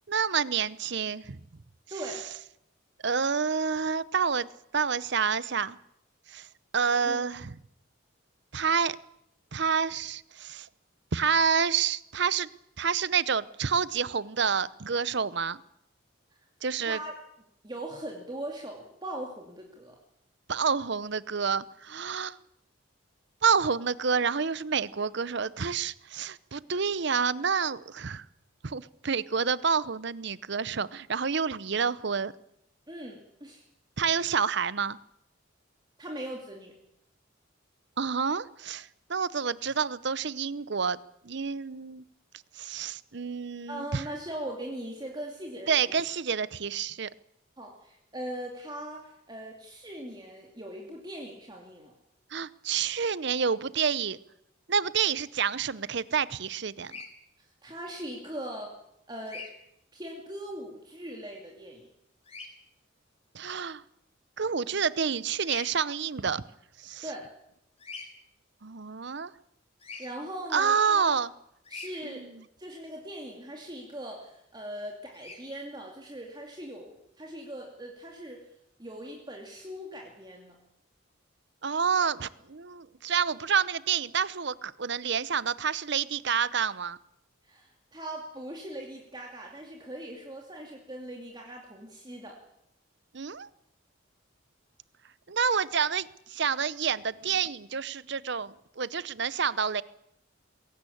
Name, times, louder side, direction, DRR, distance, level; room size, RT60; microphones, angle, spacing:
voice 1, 0.1-1.4 3.0-4.5 4.7-5.8 6.3-6.5 6.7-7.5 8.5-9.0 9.5-10.7 11.1-12.5 12.8-15.6 16.6-17.0 20.5-22.4 23.4-28.2 28.6-32.3 34.0-35.0 38.0-41.0 41.2-42.0 42.5-44.0 45.7-47.1 52.3-54.2 54.7-56.9 63.3-63.8 64.4-66.4 66.8-67.0 68.6-69.3 70.5-71.3 72.0-72.3 81.6-87.0 93.1-93.5 95.3-99.8, right 6 dB, 55° right, 18 dB, 0.7 m, -28 dB
voice 2, 1.9-2.2 7.0-7.2 16.9-17.1 17.6-20.0 32.9-33.6 36.0-36.8 39.6-39.7 43.7-46.0 47.6-51.9 57.4-58.8 59.1-59.4 59.9-61.9 67.0-67.3 70.0-71.1 71.7-72.3 72.6-78.5 78.8-80.6 87.4-92.4, right 1 dB, 20° right, 0 dB, 2.6 m, -40 dB
Bird vocalization bird call bird song, 56.8-57.1 59.3-59.5 62.2-62.5 65.4-65.7 67.8-68.1 69.8-70.1 71.6-71.9 75.1-75.4, left 4 dB, 30° left, 3.8 m, -41 dB
21.5 x 17.0 x 8.6 m, 0.79 s
head